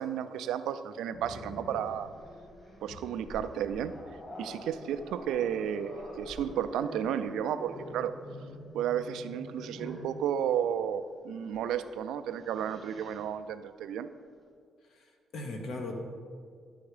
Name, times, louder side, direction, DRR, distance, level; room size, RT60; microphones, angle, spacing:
voice 1, 0.0-2.1 2.8-3.9 4.4-8.1 8.7-14.1, right 9 dB, 85° right, 11 dB, 0.3 m, -33 dB
Growling, 1.1-10.1 11.5-11.7 12.1-13.3, equal, 30° left, 2.0 m, -46 dB
voice 2, 14.9-15.9, left 2 dB, 70° left, 3 dB, 1.0 m, -39 dB
10.5 x 3.5 x 4.9 m, 2.1 s
cardioid pair, 90°, 0 cm